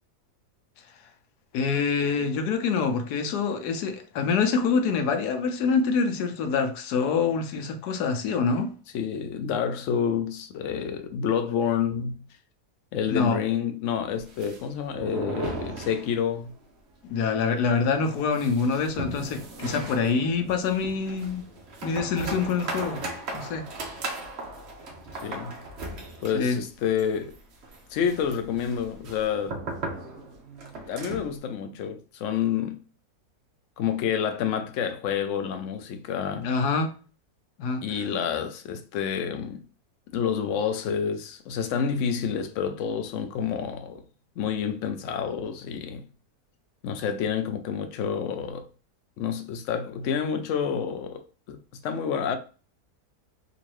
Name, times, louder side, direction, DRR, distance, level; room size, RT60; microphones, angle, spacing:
voice 1, 1.5-8.7 13.1-13.4 17.0-21.4 21.8-23.0 23.3-23.6 26.3-26.6 36.4-36.9 37.6-37.8, left 5 dB, 85° left, 1.2 m, -25 dB
voice 2, 8.9-12.2 12.9-16.5 25.2-25.6 26.2-27.3 27.9-29.6 30.9-32.8 33.8-36.5 37.8-39.6 40.1-44.0 44.4-46.1 46.8-48.6 49.2-52.4, left 7 dB, 65° left, 0.8 m, -28 dB
sound 1, 14.1-16.5 16.8-16.9 17.2-17.3 17.7-31.4, right 2 dB, 50° right, 0.9 m, -37 dB
3.8 x 2.6 x 3.1 m
omnidirectional pair, 1.7 m